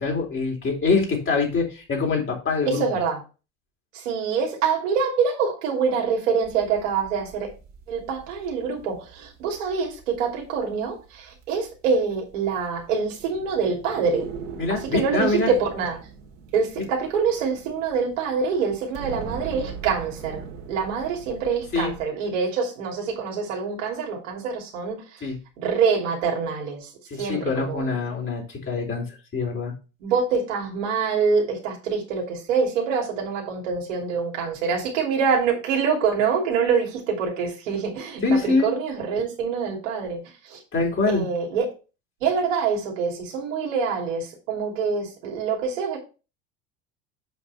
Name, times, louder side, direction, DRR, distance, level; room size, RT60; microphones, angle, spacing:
voice 1, 0.0-2.8 14.6-15.5 21.7-21.9 25.2-25.4 27.1-29.7 38.2-38.7 40.7-41.2, left 4 dB, 30° left, 3.9 m, -24 dB
voice 2, 2.7-3.2 3.9-7.5 7.9-14.3 14.9-16.0 16.5-20.4 20.7-25.2 25.6-26.9 27.2-28.0 30.0-40.6 41.1-41.7 42.2-46.0, right 5 dB, 70° right, 3.0 m, -25 dB
sound 1, 6.4-22.0, right 6 dB, 55° right, 2.8 m, -41 dB
7.9 x 5.5 x 4.2 m
hypercardioid pair, 75°, 39 cm